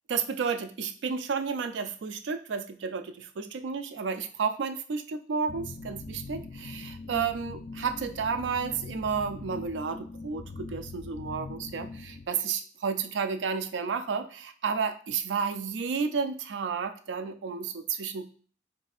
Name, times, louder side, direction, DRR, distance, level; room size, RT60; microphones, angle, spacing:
voice 1, 0.1-18.2, right 5 dB, 80° right, 9 dB, 0.4 m, -32 dB
sound 1, 5.5-12.3, left 3 dB, 50° left, 0.3 m, -42 dB
4.2 x 3.2 x 2.4 m, 0.43 s
head